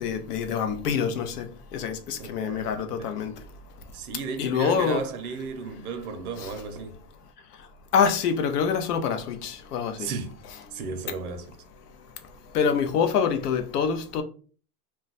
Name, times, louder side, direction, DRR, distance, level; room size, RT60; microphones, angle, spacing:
voice 1, 0.0-1.4 1.7-3.3 4.4-5.0 7.9-9.9 12.5-14.2, left 6 dB, 90° left, 0.7 m, -25 dB
voice 2, 2.2-3.2 3.9-7.0 10.0-10.4 10.7-11.6, right 5 dB, 70° right, 0.7 m, -34 dB
2.3 x 2.1 x 3.8 m
supercardioid pair, 135°, 45 cm